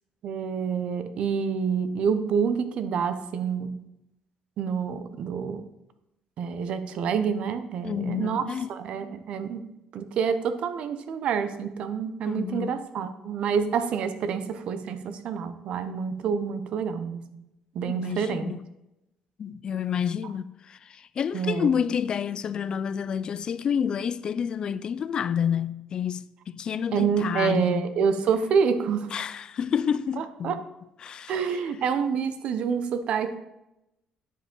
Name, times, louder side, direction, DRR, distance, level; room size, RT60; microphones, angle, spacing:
voice 1, 0.2-3.8 4.6-5.6 6.4-17.2 17.7-18.5 21.3-21.7 26.9-29.1 30.4-30.6 31.3-33.4, right 6 dB, 60° right, 0.7 m, -27 dB
voice 2, 7.8-8.7 12.2-12.8 17.9-18.6 19.4-27.8 29.1-30.6 31.0-31.6, left 8 dB, 45° left, 0.3 m, -29 dB
9.8 x 5.0 x 3.8 m
cardioid pair, 125°, 2 cm